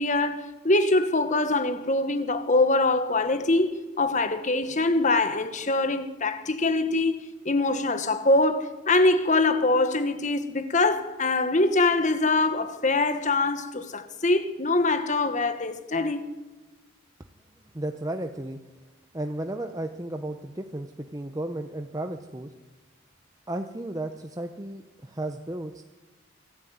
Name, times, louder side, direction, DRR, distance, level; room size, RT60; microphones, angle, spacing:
voice 1, 0.0-16.2, left 2 dB, 35° left, 1.4 m, -24 dB
voice 2, 17.7-18.6 19.1-22.5 23.5-25.8, right 1 dB, 15° right, 0.8 m, -34 dB
24.5 x 13.5 x 9.4 m
head